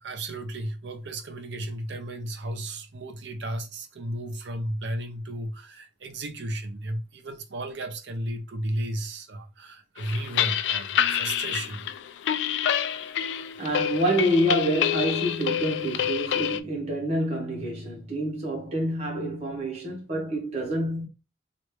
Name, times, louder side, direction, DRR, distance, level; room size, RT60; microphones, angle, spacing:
voice 1, 0.0-11.9, right 1 dB, 75° right, 0.6 m, -34 dB
sound 1, 10.0-16.6, left 10 dB, 90° left, 0.3 m, -27 dB
voice 2, 13.6-21.1, right 1 dB, 35° right, 1.1 m, -27 dB
3.1 x 2.5 x 3.2 m
head